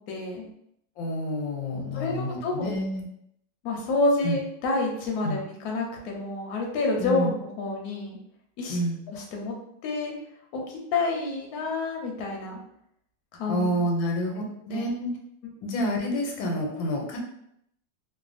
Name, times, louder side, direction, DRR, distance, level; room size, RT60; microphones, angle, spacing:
voice 1, 0.1-0.5 1.9-2.7 3.6-8.2 8.6-8.8 9.1-9.5 9.8-10.1 10.5-12.6 13.4-13.8 14.7-14.8, left 3 dB, 65° left, -1 dB, 1.0 m, -28 dB
voice 2, 1.0-3.0 4.2-4.4 5.2-5.4 7.0-7.3 8.7-9.0 13.5-15.1 15.6-17.2, equal, 85° left, 0 dB, 1.4 m, -28 dB
3.2 x 2.1 x 2.4 m, 0.74 s
omnidirectional pair, 2.1 m